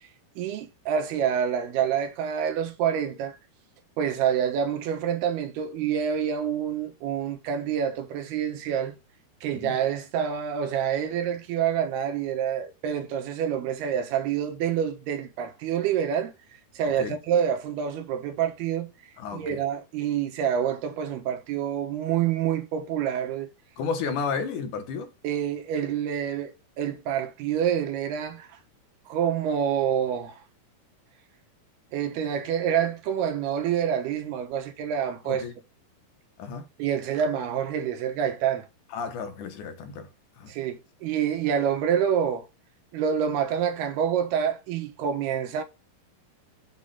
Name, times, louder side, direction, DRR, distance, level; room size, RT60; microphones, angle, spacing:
voice 1, 0.4-3.4 4.0-9.0 9.4-16.3 16.7-18.9 19.3-23.5 25.2-28.6 29.1-30.4 31.9-35.4 36.8-38.7 40.5-42.5 42.9-45.6, right 8 dB, 80° right, 3.3 m, -27 dB
voice 2, 19.2-19.5 23.8-25.1 35.3-35.5 36.4-36.7 38.9-40.1 40.4-40.5, left 5 dB, 60° left, 2.7 m, -32 dB
7.6 x 3.9 x 5.6 m
omnidirectional pair, 4.5 m